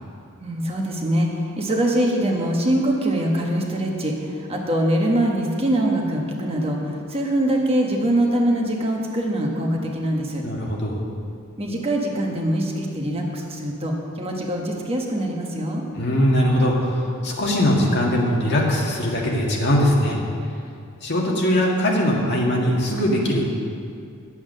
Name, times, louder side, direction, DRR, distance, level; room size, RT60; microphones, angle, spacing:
voice 1, 0.4-10.4 11.6-15.8, right 1 dB, 30° right, 0 dB, 1.2 m, -23 dB
voice 2, 10.4-11.0 16.0-20.2 21.0-23.4, equal, 55° left, -2 dB, 1.8 m, -21 dB
9.6 x 8.2 x 6.5 m, 2.4 s
head